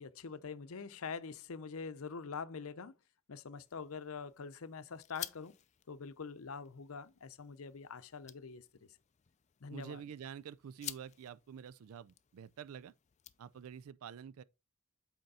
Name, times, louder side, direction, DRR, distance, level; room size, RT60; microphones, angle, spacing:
voice 1, 0.0-3.0 3.3-5.5 5.9-9.0 9.6-10.0, left 5 dB, 75° left, 0.6 m, -45 dB
sound 1, 3.6-13.9, left 12 dB, 30° left, 0.4 m, -53 dB
voice 2, 9.7-12.9 13.4-14.4, right 8 dB, 80° right, 0.4 m, -48 dB
7.8 x 4.4 x 4.1 m
head